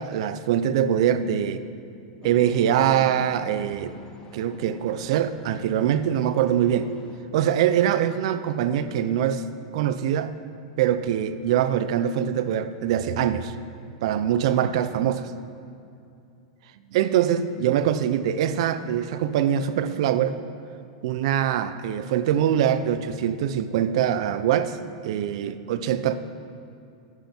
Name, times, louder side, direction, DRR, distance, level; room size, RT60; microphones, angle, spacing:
voice 1, 0.0-1.6 2.2-3.9 4.3-6.9 7.3-9.5 9.7-10.3 10.8-13.5 14.0-15.3 16.9-20.4 21.0-24.8 25.0-26.1, right 10 dB, 60° right, 13 dB, 0.6 m, -23 dB
sound 1, 2.2-7.2, left 3 dB, 25° left, 0.9 m, -45 dB
11.5 x 10.5 x 4.4 m, 2.6 s
supercardioid pair, 145°, 3 cm